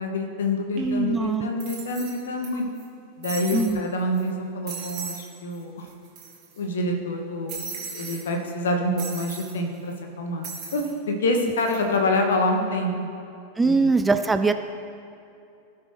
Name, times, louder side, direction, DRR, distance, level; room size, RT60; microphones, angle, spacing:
voice 1, 0.0-2.6 3.2-5.9 6.6-10.4 10.7-12.9 13.6-13.9, left 1 dB, 60° left, 3 dB, 1.3 m, -26 dB
voice 2, 0.8-1.5 3.5-3.8 13.6-14.5, right 3 dB, 10° right, 9 dB, 0.3 m, -22 dB
sound 1, 0.8-0.9 1.6-2.5 2.8-2.9 3.2-3.7 4.2-4.3 4.7-5.2 5.5-5.6 5.9-6.6 7.5-8.2 9.0-9.5 10.4-10.9 11.4-11.8, right 5 dB, 40° right, 2.2 m, -37 dB
17.5 x 6.2 x 3.2 m, 2.7 s
figure-of-eight pair, 90°, 0 cm